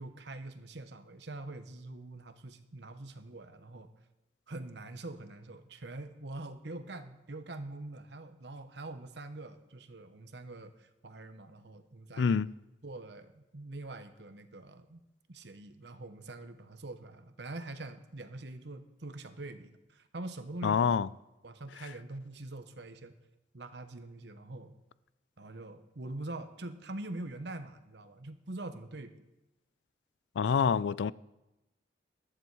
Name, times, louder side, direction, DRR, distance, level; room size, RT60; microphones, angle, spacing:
voice 1, 0.0-3.9 4.5-12.3 12.8-15.0 15.3-21.0 21.4-23.1 23.5-24.7 25.4-29.1, right 2 dB, 70° right, 1.0 m, -44 dB
voice 2, 12.2-12.5 20.6-21.1 30.4-31.1, left 6 dB, 75° left, 0.4 m, -26 dB
14.0 x 11.0 x 4.7 m
head